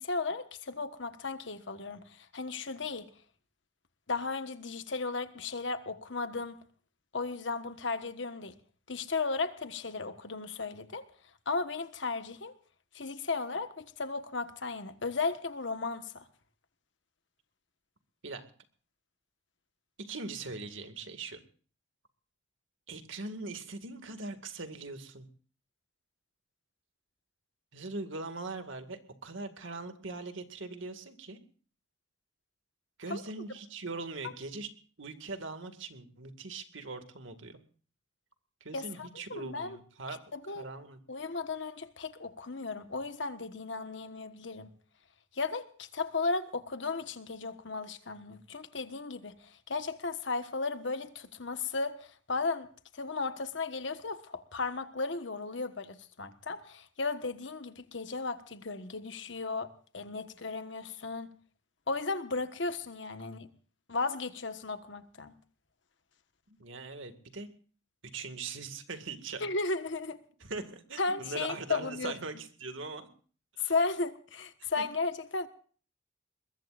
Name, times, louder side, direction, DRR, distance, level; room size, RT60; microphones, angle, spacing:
voice 1, 0.0-3.1 4.1-6.6 7.1-8.6 8.9-11.1 11.4-12.5 12.9-16.2 33.1-33.2 38.7-39.8 40.3-40.7 41.1-44.7 45.3-61.3 61.9-63.5 63.9-65.3 69.4-70.2 71.0-72.1 73.6-75.5, left 3 dB, 70° left, 1.4 m, -35 dB
voice 2, 20.0-21.4 22.9-25.3 27.7-31.4 33.0-34.7 35.0-37.6 38.6-40.2 40.5-41.0 66.6-67.5 68.1-69.5 70.4-73.1 73.5-73.7 74.6-74.7, right 3 dB, 80° right, 2.1 m, -41 dB
22.0 x 21.5 x 2.6 m
head